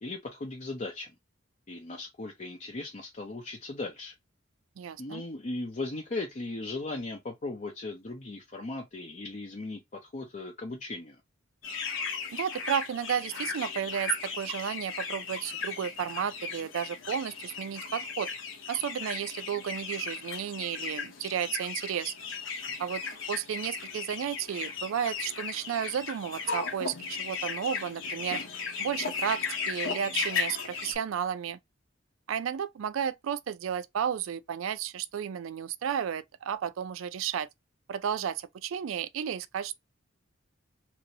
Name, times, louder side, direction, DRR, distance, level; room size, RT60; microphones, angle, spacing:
voice 1, 0.0-1.1 1.7-4.1 5.0-11.2, left 2 dB, 40° left, 0.6 m, -37 dB
voice 2, 4.8-5.2 12.3-18.3 18.7-22.1 22.8-23.0 23.3-28.4 28.8-31.6 32.3-37.5 37.9-39.7, right 8 dB, 85° right, 0.4 m, -33 dB
sound 1, 11.6-31.0, left 5 dB, 75° left, 0.9 m, -36 dB
3.0 x 2.7 x 2.7 m
head